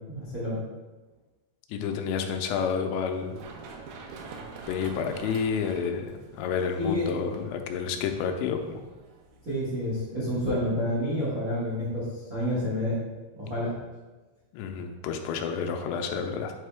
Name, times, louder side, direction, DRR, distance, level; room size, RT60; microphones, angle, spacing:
voice 1, 0.1-0.6 6.8-7.1 9.4-12.0 12.3-12.9 13.3-13.7, left 1 dB, 55° right, -9 dB, 1.0 m, -29 dB
voice 2, 1.7-3.4 4.7-8.8 14.5-16.5, left 6 dB, 90° left, 5 dB, 2.8 m, -30 dB
Run, 3.1-10.6, right 4 dB, 85° right, 2.1 m, -47 dB
8.6 x 3.7 x 3.4 m, 1.2 s
omnidirectional pair, 5.0 m